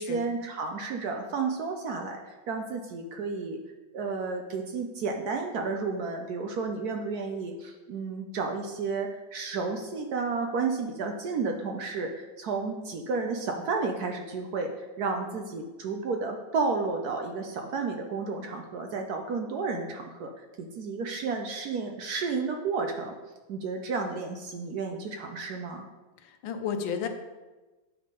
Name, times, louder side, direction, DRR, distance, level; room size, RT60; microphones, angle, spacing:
voice 1, 0.0-2.2 2.5-3.6 3.9-14.7 15.0-20.4 20.7-23.1 23.5-25.9, right 4 dB, 65° right, 3 dB, 1.0 m, -32 dB
voice 2, 26.2-27.1, left 7 dB, 85° left, 7 dB, 1.5 m, -32 dB
9.5 x 3.5 x 5.1 m, 1.2 s
omnidirectional pair, 2.1 m